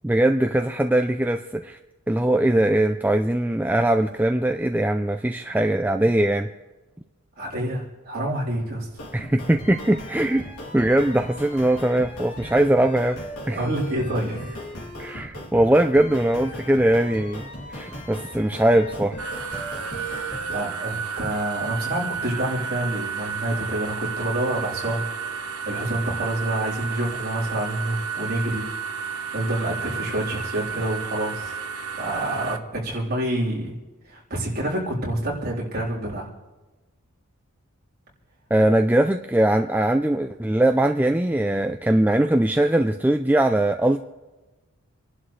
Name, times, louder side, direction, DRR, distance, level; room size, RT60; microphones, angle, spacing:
voice 1, 0.0-1.8 2.1-6.5 9.1-10.5 10.7-13.2 13.5-13.7 15.0-19.2 38.5-44.0, right 1 dB, 10° right, 6 dB, 0.4 m, -21 dB
voice 2, 7.4-8.9 13.5-14.7 20.5-28.7 29.0-31.6 31.9-33.8 34.0-36.3, right 1 dB, 40° right, -5 dB, 3.9 m, -28 dB
sound 1, 8.9-20.6, equal, 80° left, 2.9 m, -37 dB
sound 2, 19.2-32.6, right 6 dB, 75° right, 1.1 m, -32 dB
28.5 x 11.5 x 3.3 m, 1.2 s
head